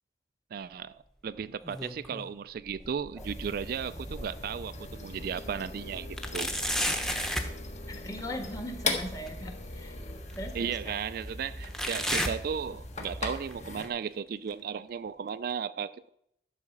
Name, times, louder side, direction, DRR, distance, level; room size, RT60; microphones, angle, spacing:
voice 1, 0.5-6.6 10.5-16.1, right 7 dB, 55° right, 0.3 m, -35 dB
sound 1, 1.4-2.3 2.7-4.6 5.1-5.2 6.2-7.6 9.3-9.4 10.3-10.4 11.7-13.1 13.5-13.9 14.5-14.6 15.5-15.6, equal, 5° left, 0.9 m, -33 dB
sound 2, 3.2-13.9, left 2 dB, 40° left, 1.5 m, -39 dB
voice 2, 7.9-10.0 10.3-10.9, equal, 20° left, 1.5 m, -39 dB
11.5 x 4.9 x 7.2 m
head